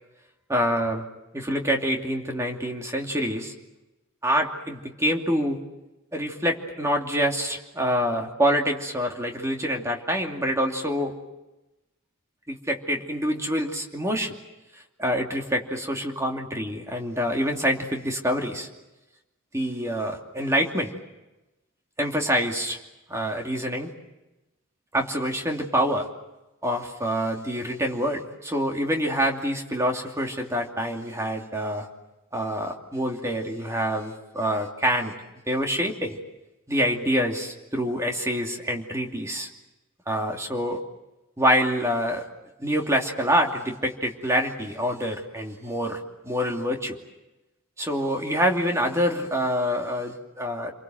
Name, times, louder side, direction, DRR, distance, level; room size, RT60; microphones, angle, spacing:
voice 1, 0.5-1.0 1.3-3.5 4.2-5.6 6.1-11.2 12.5-14.3 15.0-18.7 19.5-20.9 22.0-22.8 23.1-23.9 24.9-26.1 26.6-31.9 32.3-35.1 35.5-36.2 36.7-39.5 40.1-40.8 41.4-42.3 42.6-46.0 46.2-47.0 47.8-50.7, equal, 15° right, 1 dB, 2.7 m, -26 dB
29.0 x 23.0 x 7.8 m, 1.0 s
head